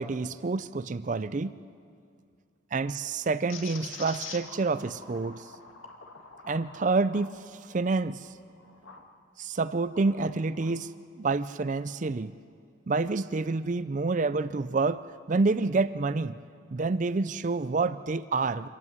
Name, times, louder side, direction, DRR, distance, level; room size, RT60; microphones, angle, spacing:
voice 1, 0.0-1.6 2.7-5.5 6.5-8.3 9.4-10.9 11.2-12.3 12.9-15.0 15.3-16.4 16.7-18.7, right 3 dB, 40° right, 15 dB, 0.4 m, -28 dB
sound 1, 3.5-9.1 9.6-10.8, left 5 dB, 90° left, 2.0 m, -46 dB
25.5 x 14.5 x 9.7 m, 2.3 s
head